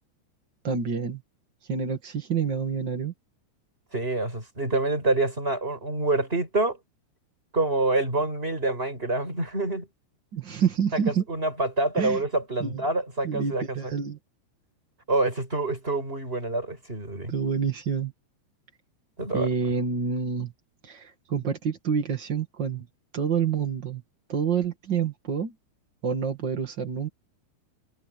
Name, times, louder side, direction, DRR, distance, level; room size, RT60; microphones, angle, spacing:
voice 1, 0.6-1.2 1.7-3.1 10.3-11.2 12.0-12.2 12.6-12.8 13.2-14.2 17.3-18.1 19.3-20.5 20.8-22.9 23.1-24.0 24.3-25.5 26.0-27.1, right 6 dB, 80° right, 1.0 m, -28 dB
voice 2, 3.9-6.8 7.5-9.9 10.9-11.0 11.3-13.9 15.1-17.3 19.2-19.5, right 2 dB, 10° right, 6.5 m, -26 dB
omnidirectional pair, 5.6 m